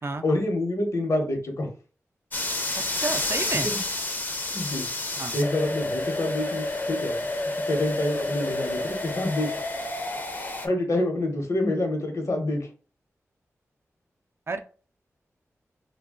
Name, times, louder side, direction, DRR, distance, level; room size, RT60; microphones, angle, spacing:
voice 1, 0.2-1.7 3.5-3.8 4.5-4.9 5.3-7.2 7.7-9.6 10.6-12.7, left 1 dB, 65° left, 3 dB, 1.0 m, -27 dB
sound 1, 2.3-10.7, left 2 dB, 35° left, 0.6 m, -29 dB
voice 2, 2.8-3.7 5.2-5.4 14.5-14.6, right 3 dB, 45° right, 7 dB, 0.4 m, -31 dB
2.4 x 2.2 x 3.7 m, 0.38 s
cardioid pair, 55°, 6 cm